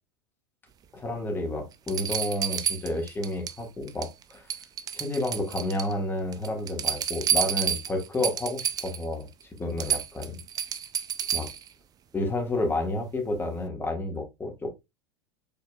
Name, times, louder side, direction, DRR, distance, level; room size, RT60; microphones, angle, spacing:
voice 1, 0.9-4.4 4.9-9.3 9.6-10.4 11.3-11.5 12.1-14.7, left 1 dB, 15° left, 2.0 m, -30 dB
sound 1, 1.2-1.3 1.9-3.6 3.9-4.2 4.5-5.9 6.3-9.0 9.4-9.5 9.8-11.7 13.4-13.5, right 9 dB, 30° right, 0.5 m, -30 dB
5.3 x 4.1 x 2.4 m
hypercardioid pair, 90°, 13 cm